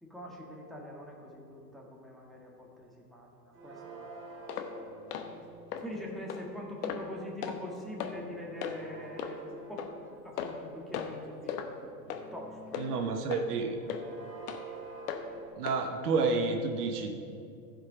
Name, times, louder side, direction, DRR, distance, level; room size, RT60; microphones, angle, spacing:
voice 1, 0.0-4.1 5.8-9.9 10.2-11.7 12.1-13.2, left 1 dB, ahead, -3 dB, 1.7 m, -44 dB
sound 1, 3.5-5.9 7.9-11.1 11.6-15.5, right 3 dB, 25° right, 1.8 m, -48 dB
sound 2, 4.5-4.7 5.1-5.3 5.7-5.8 6.3-6.4 6.8-7.1 7.4-7.6 8.0-8.1 8.6-8.8 9.2-9.3 9.8-9.9 10.4-10.6 10.9-11.2 11.5-11.7 12.1-12.2 12.7-12.9 13.3-13.5 13.9-14.0 14.5-14.6 15.1-15.2 15.7-15.8 16.2-16.3, left 9 dB, 70° left, 1.1 m, -36 dB
voice 2, 12.8-13.8 15.6-17.1, right 4 dB, 65° right, 5 dB, 1.1 m, -30 dB
15.0 x 5.1 x 5.0 m, 2.5 s
hypercardioid pair, 105°, 49 cm